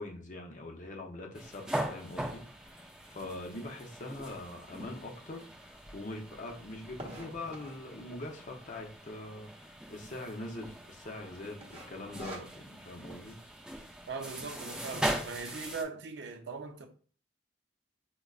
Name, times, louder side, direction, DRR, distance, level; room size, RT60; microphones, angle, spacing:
voice 1, 0.0-13.4, left 2 dB, 45° left, 0.6 m, -43 dB
sound 1, 1.3-15.8, right 1 dB, 5° right, 0.4 m, -41 dB
sound 2, 5.9-7.9 8.6-9.0 9.3-9.4 9.6-9.8 10.3-10.7 10.9-11.2 11.6-12.9, right 1 dB, 35° right, 0.8 m, -46 dB
voice 2, 14.1-16.9, right 4 dB, 65° right, 0.5 m, -40 dB
4.9 x 2.2 x 2.3 m
head